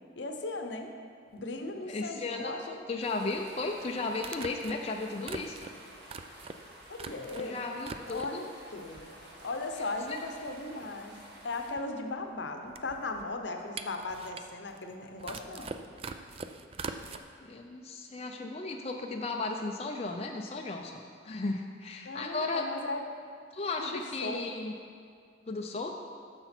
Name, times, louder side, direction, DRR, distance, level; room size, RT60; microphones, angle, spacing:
voice 1, 0.2-0.9 1.3-2.8 6.9-9.1 9.4-11.1 11.4-15.7 22.0-23.0 23.8-24.4, left 2 dB, 75° left, 5 dB, 0.8 m, -37 dB
sound 1, 1.4-1.5 3.2-3.3 4.2-7.5 7.8-8.5 9.0-9.6 9.9-10.0 10.2-17.2, right 4 dB, 30° right, 0.3 m, -43 dB
voice 2, 1.9-2.6 2.9-5.6 7.4-8.4 10.1-10.2 17.4-22.6 23.5-24.7 25.5-25.9, left 3 dB, 35° left, 2 dB, 0.4 m, -35 dB
sound 2, 3.0-11.7, right 1 dB, 65° right, 1.6 m, -52 dB
9.9 x 6.8 x 4.4 m, 2.2 s
head